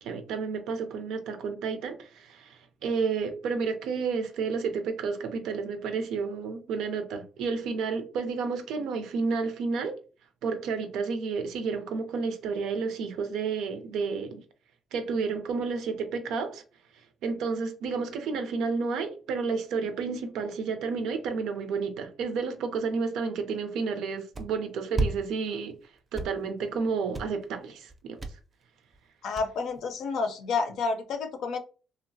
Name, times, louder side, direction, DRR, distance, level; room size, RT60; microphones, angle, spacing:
voice 1, 0.0-10.0 10.4-14.4 14.9-16.6 17.2-25.8 26.1-28.2, right 5 dB, 85° right, 0.4 m, -31 dB
sound 1, 24.3-24.5 24.9-25.1 25.5-25.7 26.0-26.8 27.1-27.4 27.9-28.3 28.6-28.7 28.9-29.0 29.4-29.9, right 2 dB, 30° right, 0.4 m, -30 dB
voice 2, 29.2-31.6, left 4 dB, 80° left, 0.5 m, -30 dB
2.7 x 2.0 x 2.6 m
cardioid pair, 90°, 0 cm